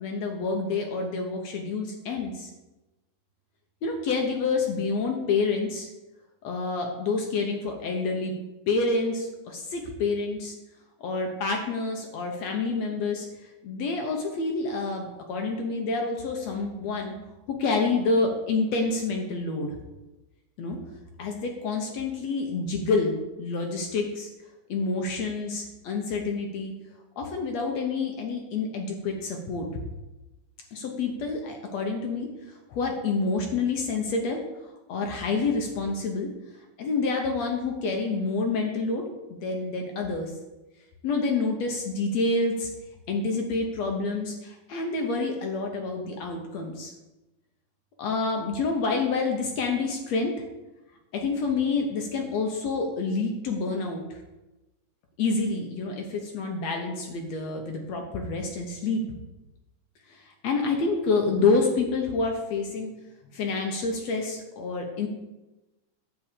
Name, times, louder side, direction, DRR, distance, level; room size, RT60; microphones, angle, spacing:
voice 1, 0.0-2.5 3.8-5.9 6.4-8.3 8.7-10.6 11.0-17.2 17.5-19.8 20.6-20.8 21.2-24.3 24.7-26.7 27.2-29.7 30.7-32.3 32.7-34.4 34.9-36.3 36.8-39.0 39.3-40.3 41.0-42.7 43.1-46.9 48.0-50.3 51.1-54.2 55.2-59.0 60.1-62.9 63.3-65.1, left 3 dB, 65° left, 2 dB, 1.8 m, -28 dB
10.5 x 4.7 x 8.1 m, 1.0 s
omnidirectional pair, 4.0 m